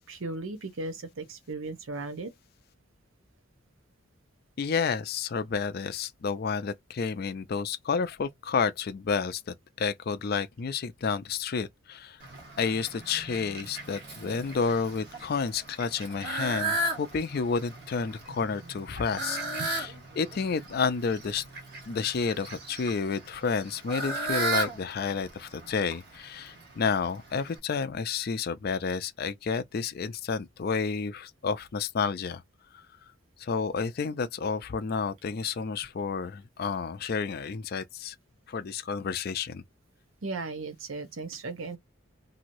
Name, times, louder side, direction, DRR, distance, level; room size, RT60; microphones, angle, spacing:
voice 1, 0.1-2.3 19.6-19.7 40.2-41.8, right 3 dB, 80° right, 0.7 m, -36 dB
voice 2, 4.6-12.2 12.6-21.4 21.9-32.4 33.4-38.1 38.5-39.6, left 5 dB, 50° left, 0.4 m, -30 dB
Fowl, 12.2-27.6, right 2 dB, 50° right, 1.4 m, -36 dB
3.0 x 2.7 x 2.6 m
head